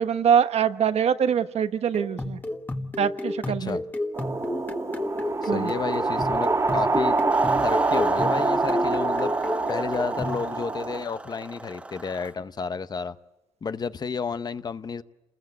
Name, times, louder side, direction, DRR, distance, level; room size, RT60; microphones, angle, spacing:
voice 1, 0.0-2.4 3.0-3.8 5.5-5.7, right 8 dB, 70° right, 10 dB, 1.2 m, -23 dB
sound 1, 1.9-10.4, left 1 dB, 15° left, 1.5 m, -32 dB
voice 2, 3.4-3.8 5.4-7.2 7.6-9.3 9.7-13.2 13.6-15.0, left 5 dB, 35° left, 13 dB, 0.8 m, -31 dB
sound 2, 4.1-11.0, right 3 dB, 25° right, 2.1 m, -25 dB
sound 3, 7.3-12.3, right 2 dB, 10° right, 1.3 m, -40 dB
29.5 x 21.0 x 8.2 m, 1.1 s
wide cardioid pair, 155°, 11 cm